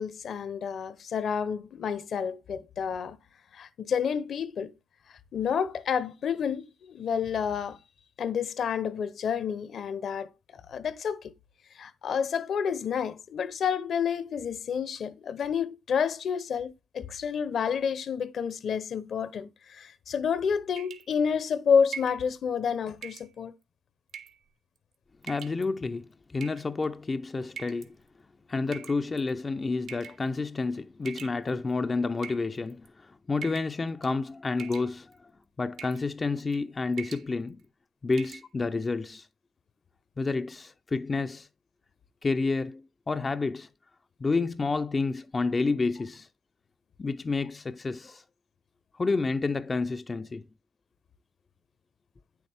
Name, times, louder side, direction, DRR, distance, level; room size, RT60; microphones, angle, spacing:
voice 1, 0.0-3.2 3.5-4.7 5.3-7.8 8.2-10.3 10.7-11.3 11.7-23.5, left 7 dB, 60° left, 0.9 m, -29 dB
sound 1, 20.8-21.2 21.9-22.2 23.0-23.3 24.1-24.4 25.2-25.6 26.4-26.9 27.6-27.9 28.7-29.3 29.9-30.2 31.0-31.7 32.2-32.9 33.4-33.8 34.0-34.3 34.6-35.2 35.8-36.0 36.4-36.6 36.9-37.3 37.6-37.7 38.1-38.4, right 7 dB, 75° right, 1.6 m, -43 dB
voice 2, 25.2-28.0 28.5-35.3 35.6-37.6 38.0-39.3 40.2-41.5 42.2-43.7 44.2-46.3 47.0-48.2 48.9-50.5, left 3 dB, 30° left, 0.5 m, -30 dB
9.3 x 8.0 x 3.5 m
cardioid pair, 90°, 0 cm